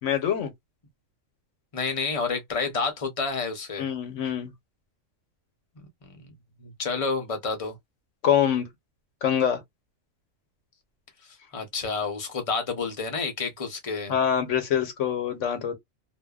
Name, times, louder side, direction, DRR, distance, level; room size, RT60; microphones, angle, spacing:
voice 1, 0.0-0.5 3.8-4.5 8.2-8.7 9.2-9.6 14.1-15.7, left 9 dB, 70° left, 1.1 m, -25 dB
voice 2, 1.7-3.9 5.8-6.3 6.6-7.8 11.5-14.1, left 4 dB, 30° left, 0.7 m, -30 dB
2.6 x 2.1 x 2.2 m
omnidirectional pair, 1.4 m